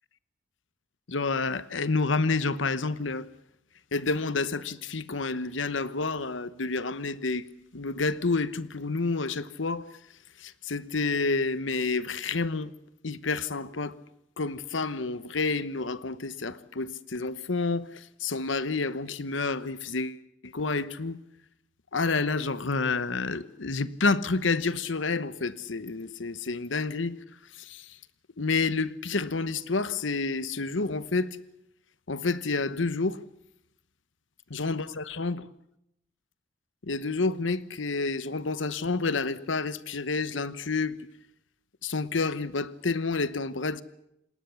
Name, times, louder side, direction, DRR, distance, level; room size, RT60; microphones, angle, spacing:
voice 1, 1.1-3.3 3.9-7.4 7.7-9.9 10.4-12.7 13.0-14.0 14.4-21.2 21.9-27.2 27.5-28.0 28.4-31.3 32.1-33.2 34.5-35.5 36.8-41.0 41.8-43.8, left 3 dB, 85° left, 1.1 m, -29 dB
28.0 x 19.5 x 7.1 m
head